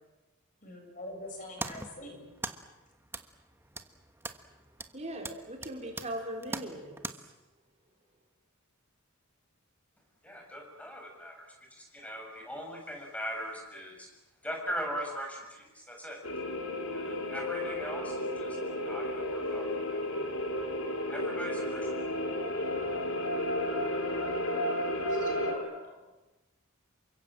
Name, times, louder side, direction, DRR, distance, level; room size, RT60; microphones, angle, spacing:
voice 1, 0.6-2.3 25.1-26.1, left 1 dB, 40° left, 2 dB, 7.0 m, -44 dB
sound 1, 1.2-7.1, right 2 dB, 10° right, 1.3 m, -43 dB
voice 2, 4.9-7.3, right 1 dB, 30° right, 1 dB, 4.0 m, -40 dB
voice 3, 10.2-14.1 14.4-16.2 16.9-18.6 18.8-20.1 21.1-21.9, equal, 5° left, 0 dB, 7.6 m, -40 dB
sound 2, 16.2-25.5, left 1 dB, 75° left, 4.2 m, -32 dB
28.5 x 24.5 x 7.7 m, 1.0 s
head